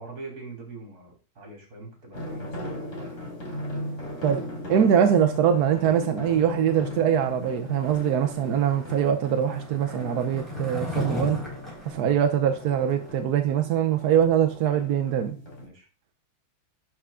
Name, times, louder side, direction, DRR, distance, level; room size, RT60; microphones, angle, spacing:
voice 1, 0.0-3.1 11.9-12.2 15.6-15.9, right 2 dB, 45° right, 1 dB, 3.5 m, -43 dB
sound 1, 2.1-15.7, left 1 dB, 35° left, 3.1 m, -37 dB
voice 2, 4.7-11.4 11.8-15.4, right 9 dB, 65° right, 7 dB, 1.0 m, -23 dB
Skateboard, 7.7-13.2, left 4 dB, ahead, 4.5 m, -37 dB
11.5 x 5.0 x 3.7 m, 0.33 s
omnidirectional pair, 2.3 m